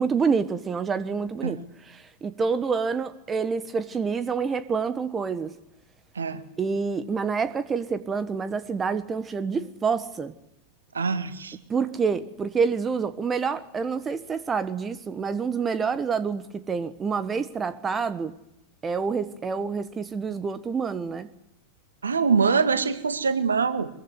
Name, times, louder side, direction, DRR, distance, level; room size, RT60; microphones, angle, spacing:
voice 1, 0.0-1.6 1.9-5.5 6.6-10.3 11.7-18.3 18.8-21.3, right 5 dB, 20° right, 14 dB, 1.3 m, -27 dB
voice 2, 10.9-11.6 22.0-23.9, right 5 dB, 70° right, 10 dB, 2.0 m, -24 dB
24.0 x 22.0 x 9.5 m, 0.82 s
figure-of-eight pair, 90°, 0 cm